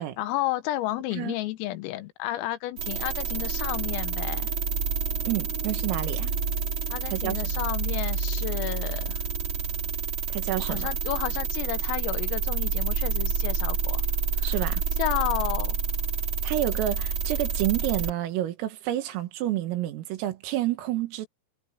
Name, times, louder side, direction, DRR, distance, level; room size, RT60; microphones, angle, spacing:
voice 1, 0.0-4.5 6.9-9.2 10.6-14.0 14.4-14.6 15.0-15.8, left 15 dB, 85° left, 3.8 m, -32 dB
sound 1, 2.8-18.1, right 5 dB, 30° right, 3.0 m, -28 dB
voice 2, 5.2-6.3 7.1-7.5 10.3-10.9 14.4-14.8 16.4-21.3, right 13 dB, 85° right, 4.4 m, -29 dB
omnidirectional pair, 5.9 m